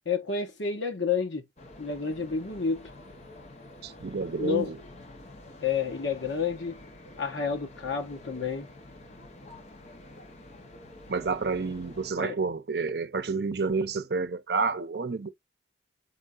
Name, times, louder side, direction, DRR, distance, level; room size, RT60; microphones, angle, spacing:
voice 1, 0.1-1.4 1.8-2.9 4.4-4.7 5.6-6.8 7.2-8.7 12.2-12.4, left 5 dB, 80° left, 1.1 m, -30 dB
sound 1, 1.6-12.1, left 1 dB, 35° left, 0.8 m, -48 dB
voice 2, 3.8-4.8 11.1-15.3, right 4 dB, 60° right, 0.6 m, -29 dB
4.6 x 3.6 x 2.4 m
head